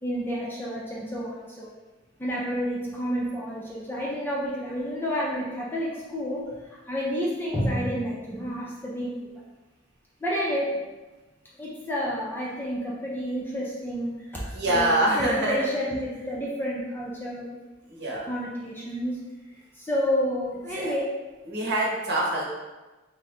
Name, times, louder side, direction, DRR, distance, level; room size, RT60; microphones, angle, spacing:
voice 1, 0.0-1.7 2.2-9.3 10.2-10.8 11.6-17.6 18.3-19.2 19.8-21.0, equal, 10° left, -5 dB, 0.5 m, -30 dB
voice 2, 14.5-15.6 17.9-18.3 20.8-20.9 21.4-22.4, right 1 dB, 55° right, -5 dB, 1.0 m, -25 dB
3.7 x 2.1 x 4.2 m, 1.2 s
head